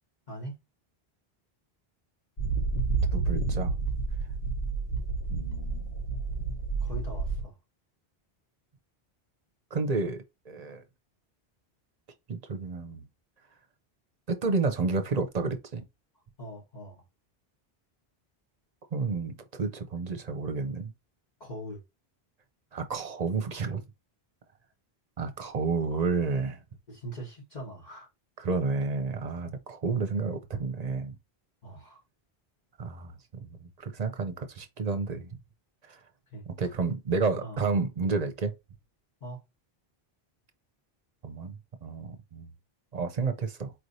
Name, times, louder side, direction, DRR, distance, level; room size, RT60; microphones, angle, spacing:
voice 1, 0.3-0.6 6.8-7.5 16.4-17.0 21.4-21.8 26.9-28.1 31.6-32.0 36.3-36.7 37.4-37.6 39.2-39.4, right 1 dB, 45° left, 1.4 m, -42 dB
sound 1, 2.4-7.4, right 4 dB, 60° left, 1.4 m, -30 dB
voice 2, 3.1-3.7 5.3-5.9 9.7-10.8 12.3-13.0 14.3-15.8 18.9-20.9 22.7-23.8 25.2-26.6 28.4-31.2 32.8-33.1 33.5-35.4 35.9-36.0 36.5-38.5 41.2-42.5 42.9-43.7, right 4 dB, 45° right, 0.8 m, -31 dB
4.7 x 3.2 x 2.6 m
omnidirectional pair, 1.1 m